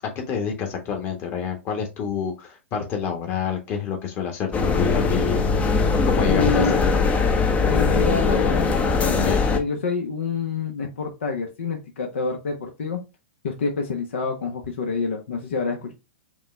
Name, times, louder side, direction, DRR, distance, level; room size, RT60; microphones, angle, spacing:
voice 1, 0.3-5.5 6.1-7.2 9.2-9.4, left 7 dB, 35° left, 2 dB, 1.4 m, -28 dB
sound 1, 4.5-9.6, left 4 dB, 20° left, 0.6 m, -20 dB
voice 2, 6.2-6.8 7.6-13.0 13.4-15.9, left 4 dB, 70° left, 3 dB, 1.0 m, -28 dB
5.3 x 2.4 x 3.3 m, 0.26 s
hypercardioid pair, 115°, 7 cm